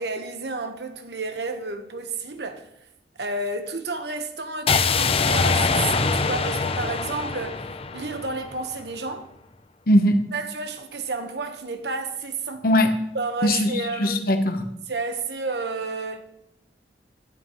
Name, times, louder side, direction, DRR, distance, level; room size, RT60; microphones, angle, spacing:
voice 1, 0.0-2.7 3.2-7.7 7.9-9.3 10.3-12.7 13.1-14.3 14.9-16.2, right 3 dB, 70° right, 1.3 m, -31 dB
sound 1, 4.7-8.7, left 4 dB, 35° left, 0.6 m, -23 dB
voice 2, 9.9-10.2 12.6-12.9 13.4-13.7 14.0-14.7, left 1 dB, 55° left, 1.1 m, -19 dB
14.0 x 12.0 x 3.2 m
head